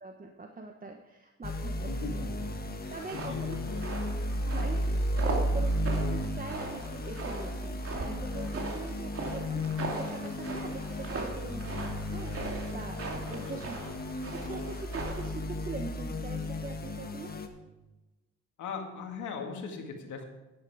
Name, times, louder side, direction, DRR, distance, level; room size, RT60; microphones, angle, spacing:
voice 1, 0.0-2.2 2.9-3.6 4.5-4.8 5.2-13.8 14.3-17.3, right 3 dB, 30° right, 3 dB, 1.1 m, -42 dB
sound 1, 1.4-17.5, left 1 dB, 30° left, 1.4 m, -34 dB
voice 2, 1.8-2.5 2.8-3.9 13.3-13.5 18.6-20.2, left 5 dB, 75° left, 3 dB, 2.2 m, -40 dB
sound 2, 2.9-15.4, right 3 dB, 50° right, 2.7 m, -40 dB
10.5 x 10.5 x 4.9 m, 1.1 s
cardioid pair, 90°, 30 cm